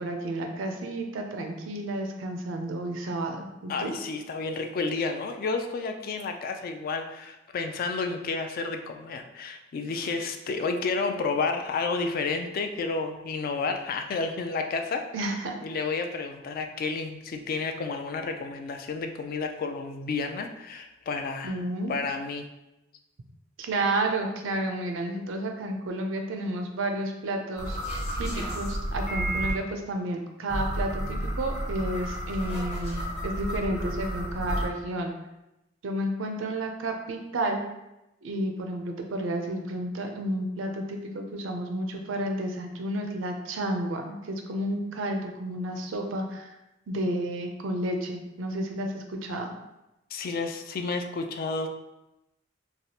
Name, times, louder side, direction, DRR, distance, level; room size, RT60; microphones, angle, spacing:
voice 1, 0.0-3.9 15.1-15.6 21.4-21.9 23.6-27.8 28.2-35.1 35.8-37.6 38.2-46.5 46.9-49.5, right 1 dB, 80° right, 3 dB, 0.5 m, -31 dB
voice 2, 3.7-15.0 15.6-21.6 21.9-22.4 50.1-51.7, left 4 dB, 50° left, 5 dB, 0.3 m, -31 dB
sound 1, 27.6-29.5 30.5-34.6, equal, 35° left, 0.8 m, -31 dB
3.3 x 2.4 x 2.7 m, 0.93 s
head